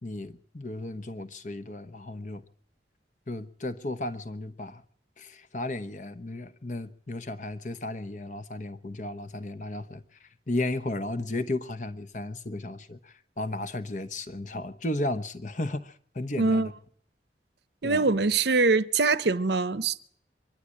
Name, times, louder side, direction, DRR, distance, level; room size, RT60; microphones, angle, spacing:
voice 1, 0.0-2.4 3.3-4.8 5.2-16.7 17.8-18.1, left 2 dB, 45° left, 1.1 m, -34 dB
voice 2, 16.4-16.7 17.8-20.0, right 3 dB, 65° right, 0.8 m, -23 dB
23.5 x 11.0 x 9.9 m
head